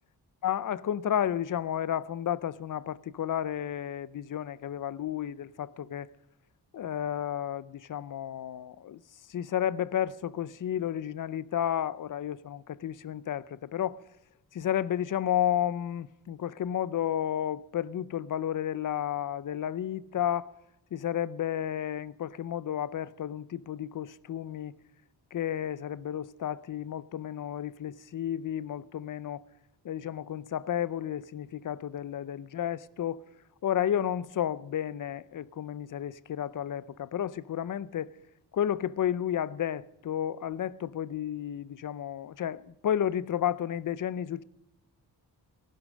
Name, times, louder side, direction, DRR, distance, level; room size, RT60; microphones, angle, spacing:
voice 1, 0.4-6.1 6.7-9.0 9.3-14.0 14.5-20.5 20.9-24.8 25.3-29.4 29.8-33.2 33.6-38.1 38.5-44.4, left 10 dB, 50° left, 0.6 m, -32 dB
17.5 x 11.5 x 6.4 m
wide cardioid pair, 150°, 41 cm